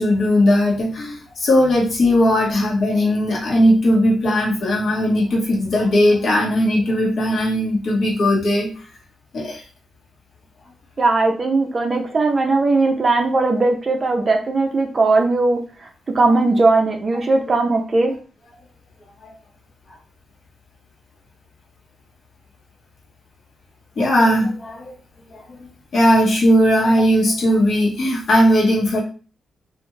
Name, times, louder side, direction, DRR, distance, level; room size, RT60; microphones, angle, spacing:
voice 1, 0.0-8.7 9.3-9.6 19.2-19.3 24.0-24.9 25.3-29.0, equal, 55° left, -3 dB, 1.1 m, -18 dB
voice 2, 11.0-15.6 16.1-18.1, right 3 dB, 30° right, 3 dB, 0.4 m, -18 dB
2.4 x 2.3 x 3.1 m, 0.37 s
wide cardioid pair, 155°, 0 cm